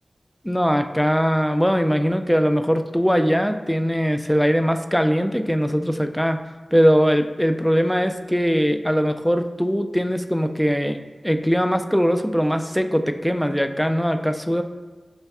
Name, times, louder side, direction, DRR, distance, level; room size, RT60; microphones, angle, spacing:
voice 1, 0.4-6.4 6.7-11.0 11.2-14.6, equal, 5° left, 7 dB, 0.3 m, -21 dB
5.4 x 3.2 x 2.3 m, 1.3 s
cardioid pair, 40°, 0 cm